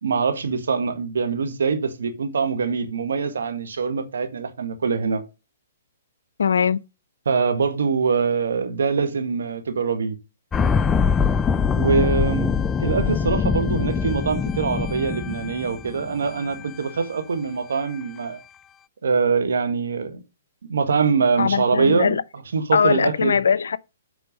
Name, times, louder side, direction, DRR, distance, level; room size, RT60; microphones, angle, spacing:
voice 1, 0.0-5.2 7.2-10.2 11.7-18.4 19.0-20.2 20.7-22.2 22.5-23.4, right 5 dB, 75° right, 1.7 m, -23 dB
voice 2, 6.4-6.8 21.4-22.2 22.7-23.8, left 6 dB, 75° left, 0.5 m, -20 dB
sound 1, 10.5-16.7 17.0-17.1, left 6 dB, 15° left, 0.3 m, -23 dB
7.6 x 4.5 x 6.3 m
hypercardioid pair, 130°, 0 cm